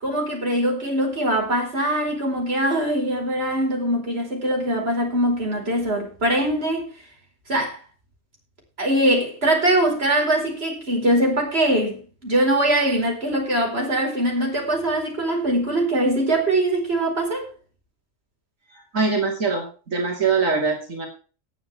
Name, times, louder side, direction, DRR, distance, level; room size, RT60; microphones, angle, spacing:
voice 1, 0.0-6.9 7.5-7.8 8.8-17.5, right 1 dB, 50° right, 4.9 m, -22 dB
voice 2, 18.9-21.1, right 4 dB, 90° right, 3.1 m, -23 dB
18.5 x 8.0 x 3.5 m
omnidirectional pair, 1.3 m